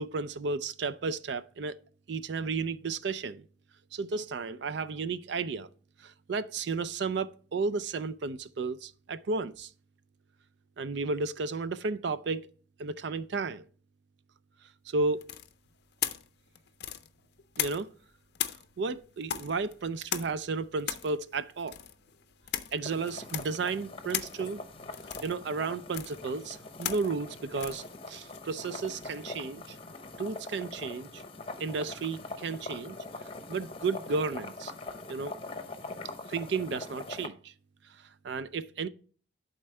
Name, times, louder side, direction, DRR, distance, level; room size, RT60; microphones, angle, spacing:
voice 1, 0.0-1.8 2.1-3.4 3.9-5.7 6.0-9.7 10.8-12.5 12.8-13.6 14.9-15.3 17.6-17.9 18.8-21.8 22.7-24.6 25.2-29.8 30.2-31.2 31.6-33.0 33.5-34.7 35.1-35.3 36.3-37.5 38.0-38.9, right 4 dB, 60° right, 0.4 m, -33 dB
sound 1, 15.2-18.0 18.3-29.3, left 11 dB, 55° left, 0.5 m, -38 dB
sound 2, 22.8-37.3, left 3 dB, 30° left, 0.8 m, -43 dB
11.0 x 4.3 x 3.3 m
head